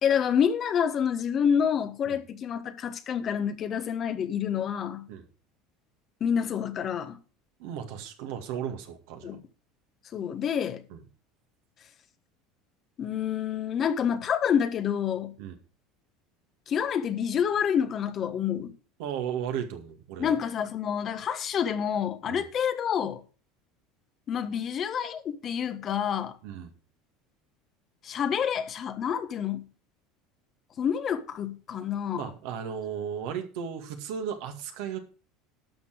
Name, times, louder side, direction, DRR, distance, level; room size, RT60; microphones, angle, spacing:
voice 1, 0.0-5.1 6.2-7.2 9.2-9.4 10.1-10.8 13.0-15.4 16.7-18.7 20.2-23.2 24.3-26.4 28.0-29.7 30.8-32.3, left 8 dB, 45° left, 1.3 m, -28 dB
voice 2, 7.6-9.4 10.9-11.0 15.4-15.6 19.0-20.3 22.3-22.4 26.4-26.7 32.1-35.0, right 8 dB, 70° right, 2.1 m, -35 dB
12.0 x 5.9 x 6.4 m
hypercardioid pair, 80°, 0 cm